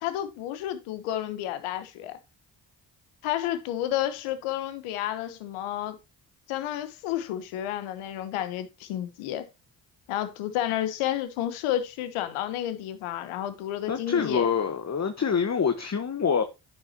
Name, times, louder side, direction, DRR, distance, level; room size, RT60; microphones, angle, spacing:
voice 1, 0.0-2.2 3.2-6.0 6.5-9.5 10.1-14.5, left 12 dB, 85° left, 1.1 m, -31 dB
voice 2, 13.9-16.4, left 6 dB, 35° left, 1.0 m, -25 dB
10.0 x 6.2 x 2.9 m
hypercardioid pair, 40°, 49 cm